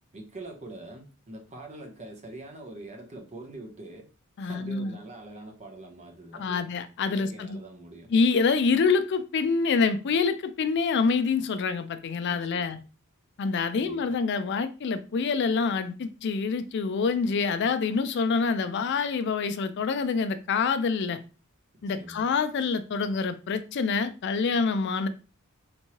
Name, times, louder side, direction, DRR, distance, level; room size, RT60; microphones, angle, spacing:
voice 1, 0.1-4.1 4.4-6.7 7.1-8.1 12.2-12.8 13.7-14.2 21.9-22.3, right 2 dB, 30° right, 2 dB, 0.8 m, -44 dB
voice 2, 4.4-4.9 6.3-7.6 8.1-12.8 13.4-21.2 21.8-25.1, left 5 dB, 55° left, 11 dB, 0.4 m, -26 dB
3.5 x 2.9 x 2.9 m, 0.33 s
head